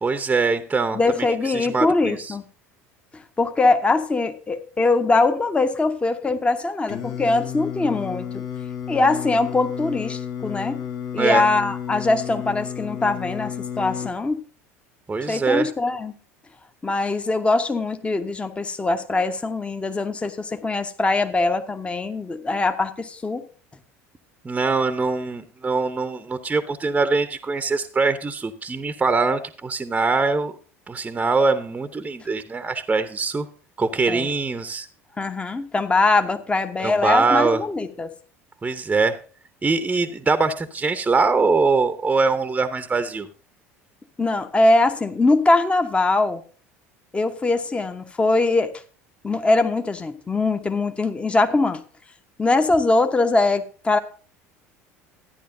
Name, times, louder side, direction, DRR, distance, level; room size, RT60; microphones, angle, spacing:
voice 1, 0.0-1.3 1.5-2.3 11.2-11.4 15.1-15.7 24.4-30.5 30.9-33.5 33.8-34.9 36.8-37.6 38.6-39.2 39.6-43.3, right 4 dB, 15° right, 11 dB, 0.8 m, -22 dB
voice 2, 0.9-2.4 3.1-8.4 8.9-10.8 11.1-14.4 15.3-16.1 16.8-23.4 34.1-34.3 35.2-38.1 44.2-46.4 47.1-48.7 49.2-51.8 52.4-54.0, left 3 dB, 15° left, 7 dB, 0.9 m, -22 dB
Singing, 6.9-14.1, left 8 dB, 45° left, 1.4 m, -32 dB
14.0 x 10.0 x 2.6 m, 0.40 s
figure-of-eight pair, 70°, 8 cm